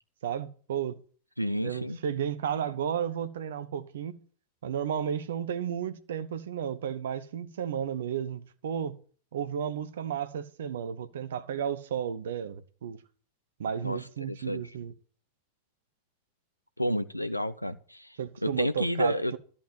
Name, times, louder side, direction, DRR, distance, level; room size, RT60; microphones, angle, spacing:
voice 1, 0.2-1.0 1.6-4.2 4.6-9.0 9.3-13.0 13.6-14.9 18.2-19.4, right 8 dB, 60° right, 1.1 m, -33 dB
voice 2, 1.4-2.0 13.8-14.6 16.8-18.2 18.4-19.3, equal, 90° left, 0.7 m, -30 dB
12.5 x 5.5 x 9.0 m
figure-of-eight pair, 90°, 0 cm